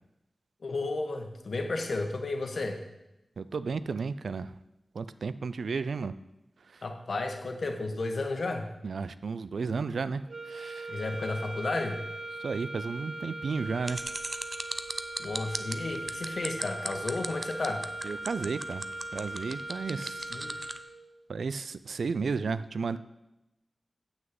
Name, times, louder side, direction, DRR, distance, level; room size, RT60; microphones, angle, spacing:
voice 1, 0.6-2.8 6.8-8.7 10.9-12.1 15.2-17.9 20.3-20.6, left 2 dB, 65° left, 4 dB, 1.3 m, -33 dB
voice 2, 3.4-4.5 4.9-6.1 6.7-6.8 8.8-10.9 12.4-14.0 18.0-18.8 19.1-20.3 21.3-23.0, right 4 dB, 90° right, 14 dB, 0.3 m, -33 dB
sound 1, 10.3-21.2, right 2 dB, 55° right, 1.4 m, -40 dB
sound 2, 13.8-20.8, right 2 dB, 30° right, 0.5 m, -36 dB
7.3 x 6.4 x 7.8 m, 0.92 s
wide cardioid pair, 100°, 0 cm